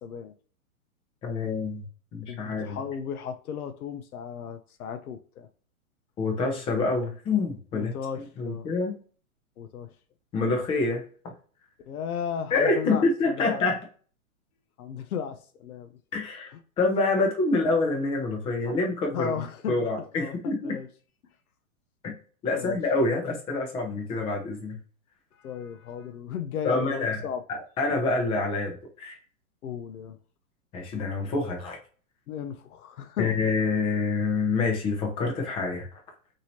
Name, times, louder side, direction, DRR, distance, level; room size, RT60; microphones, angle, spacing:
voice 1, 0.0-0.3 2.3-5.5 7.7-8.7 9.6-9.9 11.9-13.7 14.8-16.0 19.1-19.9 20.1-20.4 20.6-20.9 22.5-22.8 25.3-27.4 29.6-30.2 32.3-33.4, left 7 dB, 85° left, 0.6 m, -35 dB
voice 2, 1.2-1.8 2.1-2.8 6.2-7.9 8.4-9.0 10.3-11.0 12.5-13.8 16.1-16.5 16.8-19.3 19.7-20.8 22.0-22.1 22.4-24.8 26.6-27.2 27.5-29.2 30.7-31.8 33.2-35.9, left 3 dB, 15° left, 0.4 m, -26 dB
2.9 x 2.7 x 2.7 m
hypercardioid pair, 125°, 43 cm